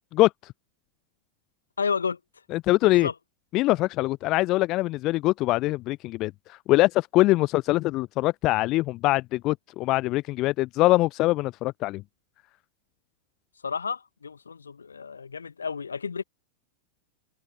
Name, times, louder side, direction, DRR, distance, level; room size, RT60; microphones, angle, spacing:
voice 1, 0.1-0.5 2.5-3.1 3.5-12.0, left 18 dB, 40° left, 0.4 m, -23 dB
voice 2, 1.8-2.2 2.8-3.1 13.6-16.2, left 5 dB, 75° left, 1.8 m, -31 dB
figure-of-eight pair, 90°, 0 cm